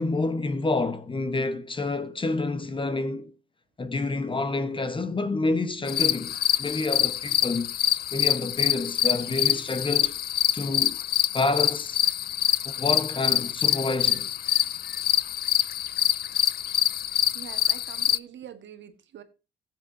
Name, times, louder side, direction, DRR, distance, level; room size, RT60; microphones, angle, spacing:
voice 1, 0.0-3.3 3.8-7.7 8.1-10.2 10.5-11.0 11.3-12.0 12.6-14.3, left 3 dB, 25° left, 1.1 m, -28 dB
sound 1, 5.9-18.2, left 11 dB, 50° left, 0.4 m, -25 dB
voice 2, 17.3-19.2, right 9 dB, 65° right, 1.6 m, -44 dB
17.0 x 7.6 x 2.7 m
cardioid pair, 90°, 20 cm